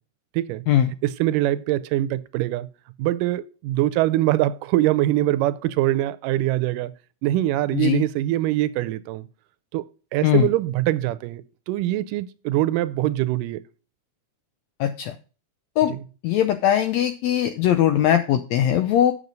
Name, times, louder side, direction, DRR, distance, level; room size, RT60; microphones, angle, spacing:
voice 1, 1.0-2.7 3.0-6.9 7.2-9.3 9.7-9.8 10.1-13.6 15.9-16.0, right 15 dB, 90° right, 2.2 m, -23 dB
voice 2, 14.8-15.1 15.8-15.9 16.2-19.1, left 10 dB, 90° left, 1.6 m, -20 dB
8.0 x 6.1 x 5.3 m
omnidirectional pair, 3.7 m